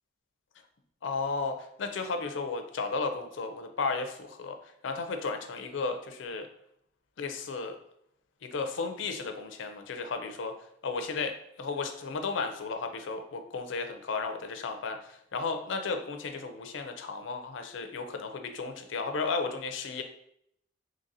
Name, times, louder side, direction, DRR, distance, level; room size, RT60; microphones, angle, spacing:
voice 1, 1.0-6.5 7.2-7.8 8.4-10.6 10.8-20.0, left 4 dB, 90° left, 6 dB, 0.5 m, -34 dB
3.9 x 3.2 x 2.7 m, 0.73 s
head